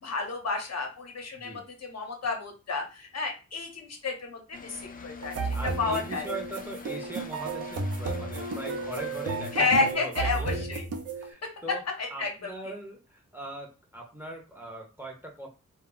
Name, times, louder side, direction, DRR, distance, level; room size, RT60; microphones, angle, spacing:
voice 1, 0.0-5.3 5.8-6.2 9.5-10.8 12.0-12.5, left 3 dB, 60° left, 3 dB, 0.7 m, -30 dB
voice 2, 1.3-1.6 5.5-10.7 11.2-11.8 12.1-15.5, right 1 dB, 5° right, 0 dB, 0.6 m, -40 dB
sound 1, 4.5-9.9, left 4 dB, 30° left, 0.4 m, -44 dB
sound 2, 5.2-11.3, right 3 dB, 60° right, 0.5 m, -33 dB
2.2 x 2.0 x 3.6 m, 0.30 s
wide cardioid pair, 95°, 29 cm